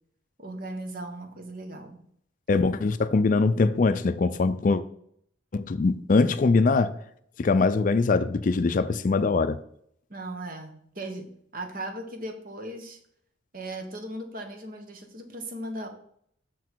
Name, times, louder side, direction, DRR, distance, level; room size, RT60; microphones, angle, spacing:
voice 1, 0.4-2.0 10.1-13.0 13.5-15.9, right 1 dB, 50° right, 1.2 m, -37 dB
voice 2, 2.5-4.8 5.5-6.9 7.4-9.6, left 3 dB, 45° left, 0.4 m, -22 dB
6.2 x 6.2 x 4.5 m
head